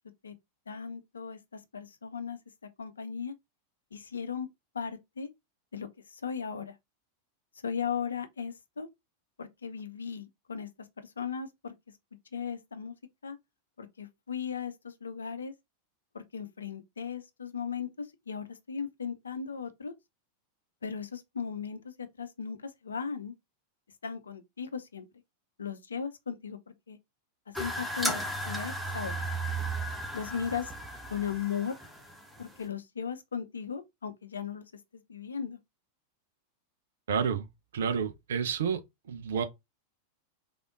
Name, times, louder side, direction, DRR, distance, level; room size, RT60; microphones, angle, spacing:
voice 1, 0.7-2.4 2.8-3.3 3.9-4.5 4.7-5.3 5.7-6.8 7.6-8.9 9.4-10.7 11.0-11.7 12.3-12.9 13.2-13.4 13.8-15.5 16.1-19.9 20.8-23.3 24.0-25.1 25.6-27.0 27.6-29.1 30.1-30.7 31.1-31.8 32.4-34.6 34.9-35.6, left 7 dB, 70° left, 0.6 m, -37 dB
sound 1, 27.5-32.6, right 1 dB, 5° right, 1.0 m, -35 dB
voice 2, 37.1-37.5 37.7-38.8 39.1-39.4, right 6 dB, 60° right, 0.6 m, -29 dB
3.6 x 3.4 x 2.5 m
figure-of-eight pair, 90°, 0 cm